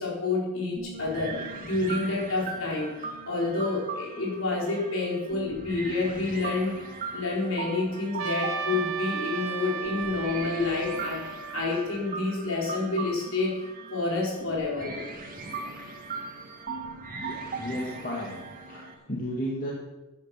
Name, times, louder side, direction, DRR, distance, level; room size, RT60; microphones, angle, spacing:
voice 1, 0.0-6.8 7.1-15.0 16.2-16.6, left 3 dB, 65° left, -3 dB, 4.5 m, -29 dB
sound 1, 0.8-18.9, right 3 dB, 40° right, 2.2 m, -39 dB
Trumpet, 8.2-12.6, right 6 dB, 70° right, 1.4 m, -35 dB
voice 2, 17.6-19.7, equal, 40° left, -4 dB, 2.2 m, -33 dB
13.0 x 9.7 x 5.9 m, 1.1 s
head